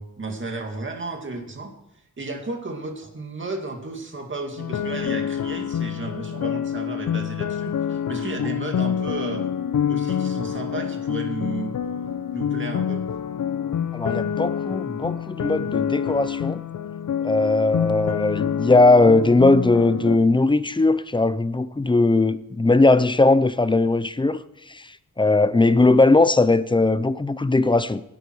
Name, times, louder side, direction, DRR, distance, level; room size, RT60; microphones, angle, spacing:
voice 1, 0.0-1.7 2.2-9.5 9.9-11.7 12.3-13.0, right 3 dB, 40° right, 2.3 m, -33 dB
sound 1, 4.6-20.2, left 8 dB, 70° left, 0.7 m, -27 dB
voice 2, 13.9-16.6 17.2-24.4 24.7-28.0, left 2 dB, 15° left, 0.5 m, -19 dB
17.0 x 11.0 x 4.7 m
wide cardioid pair, 145°, 31 cm